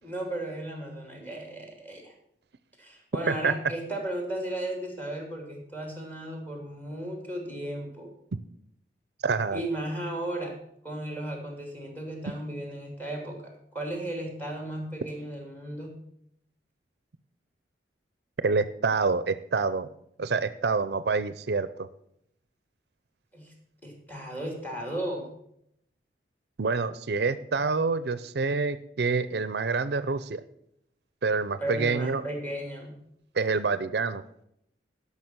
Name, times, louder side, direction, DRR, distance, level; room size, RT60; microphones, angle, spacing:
voice 1, 0.0-2.1 2.8-8.1 9.5-10.5 10.8-15.9 23.3-23.5 23.8-25.3 31.6-33.0, right 1 dB, 10° left, 2 dB, 2.9 m, -35 dB
voice 2, 9.2-9.6 18.4-19.9 20.2-21.9 26.6-30.4 31.2-32.2 33.3-34.2, right 4 dB, 65° right, 14 dB, 0.5 m, -27 dB
12.5 x 5.9 x 7.4 m, 0.73 s
head